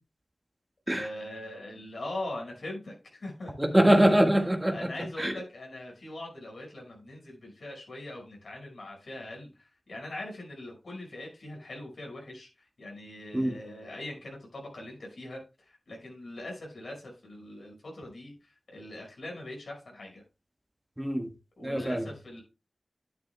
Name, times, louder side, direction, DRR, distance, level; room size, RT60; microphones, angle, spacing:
voice 1, 0.9-4.0 4.7-20.2 21.6-22.4, left 1 dB, 85° left, 5.4 m, -42 dB
voice 2, 3.6-4.9 5.2-5.3 13.3-13.5 21.0-21.3 21.6-22.0, right 1 dB, 20° right, 1.5 m, -23 dB
10.5 x 10.0 x 2.2 m
wide cardioid pair, 50°, 0 cm